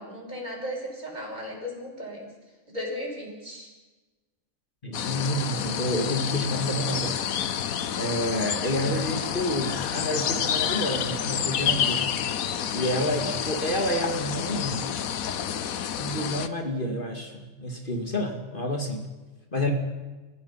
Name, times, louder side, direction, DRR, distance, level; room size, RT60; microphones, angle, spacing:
voice 1, 0.0-2.3 2.7-3.7, left 1 dB, 30° right, -2 dB, 6.4 m, -36 dB
voice 2, 4.8-7.2 8.0-12.2 12.7-14.9 16.0-19.1 19.5-19.7, equal, 35° left, 3 dB, 2.5 m, -29 dB
sound 1, 4.9-16.5, left 9 dB, 80° left, 1.4 m, -29 dB
29.5 x 15.5 x 5.8 m, 1.2 s
omnidirectional pair, 1.5 m